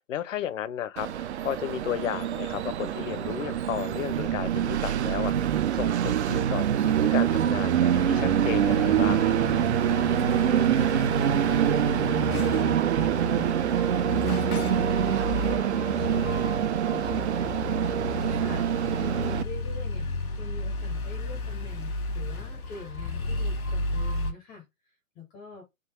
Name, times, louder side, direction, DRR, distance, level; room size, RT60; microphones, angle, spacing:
voice 1, 0.0-5.3 5.7-9.4, left 10 dB, 65° left, 0.7 m, -33 dB
Train, 1.0-19.4, right 10 dB, 55° right, 0.5 m, -25 dB
sound 1, 7.9-24.3, left 3 dB, 90° left, 1.3 m, -32 dB
voice 2, 10.3-13.9 14.4-16.5 16.9-24.6 25.1-25.6, left 4 dB, 10° left, 0.5 m, -44 dB
3.7 x 2.7 x 4.3 m
hypercardioid pair, 135°, 42 cm